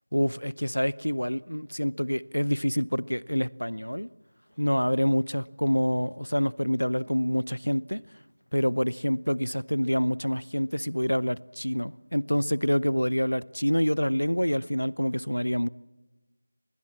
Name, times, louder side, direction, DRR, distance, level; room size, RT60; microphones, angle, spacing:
voice 1, 0.1-4.1 4.6-8.0 8.5-15.7, equal, 85° left, 0.7 m, -27 dB
25.0 x 20.5 x 7.3 m
figure-of-eight pair, 170°, 0 cm